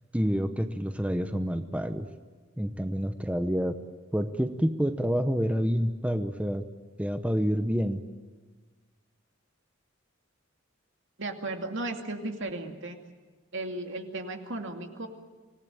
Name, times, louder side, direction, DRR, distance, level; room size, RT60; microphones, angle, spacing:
voice 1, 0.1-2.1 2.6-3.8 4.1-6.7 7.0-8.0, equal, 5° right, 8 dB, 0.8 m, -28 dB
voice 2, 11.2-13.0 13.5-15.1, right 2 dB, 65° right, 4 dB, 2.5 m, -35 dB
25.5 x 18.0 x 9.0 m, 1.4 s
head